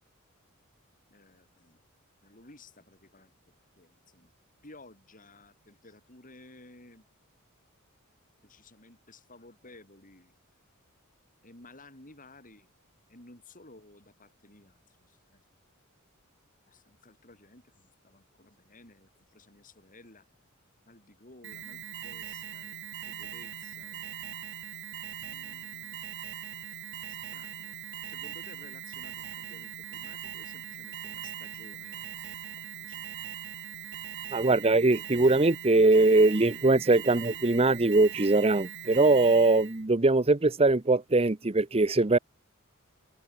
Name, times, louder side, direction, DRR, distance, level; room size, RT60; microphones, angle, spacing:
voice 1, 1.1-1.8 2.2-3.4 3.8-4.3 4.6-7.1 8.4-10.4 11.4-12.7 13.1-15.4 16.7-20.3 20.9-24.1 25.2-26.0 27.1-27.8 28.1-33.1, left 2 dB, 40° left, 7.5 m, -55 dB
Alarm, 21.4-39.8, right 10 dB, 60° right, 1.9 m, -41 dB
voice 2, 34.3-42.2, right 2 dB, 30° right, 0.9 m, -22 dB
head